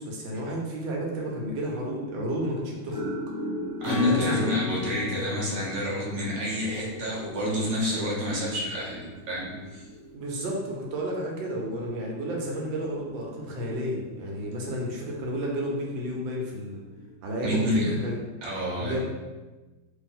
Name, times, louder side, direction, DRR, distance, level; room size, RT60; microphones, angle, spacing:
voice 1, 0.0-3.0 4.0-4.5 10.1-16.8 17.2-18.2 18.8-19.0, equal, 70° right, -1 dB, 1.3 m, -31 dB
sound 1, 1.1-16.2 16.8-17.1, equal, 30° left, 0.4 m, -42 dB
Acoustic guitar / Strum, 3.8-8.1, left 6 dB, 70° left, 0.7 m, -34 dB
voice 2, 3.8-9.8 14.6-14.7 17.4-17.9 18.4-19.0, equal, 45° right, -6 dB, 0.5 m, -29 dB
2.9 x 2.7 x 4.0 m, 1.2 s
omnidirectional pair, 2.3 m